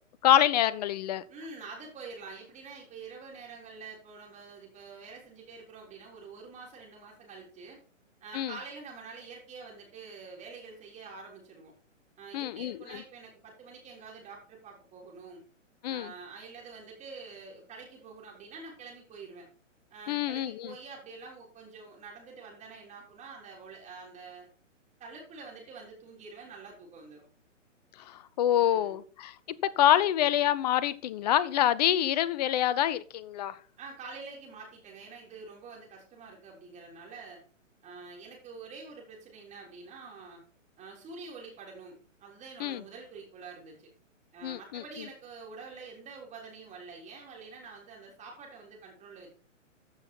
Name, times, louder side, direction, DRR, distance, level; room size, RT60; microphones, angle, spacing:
voice 1, 0.2-1.2 8.3-8.5 12.3-13.0 15.8-16.1 20.1-20.7 28.0-33.6 42.6-42.8 44.4-44.8, left 11 dB, 30° left, 18 dB, 0.6 m, -26 dB
voice 2, 1.3-7.8 8.2-11.7 12.2-15.4 15.9-19.5 19.9-24.5 25.0-27.3 28.5-29.0 33.8-37.4 37.8-40.4 40.8-43.9 44.3-49.3, right 4 dB, 20° right, -2 dB, 3.7 m, -47 dB
14.5 x 5.7 x 4.3 m, 0.40 s
figure-of-eight pair, 125°, 39 cm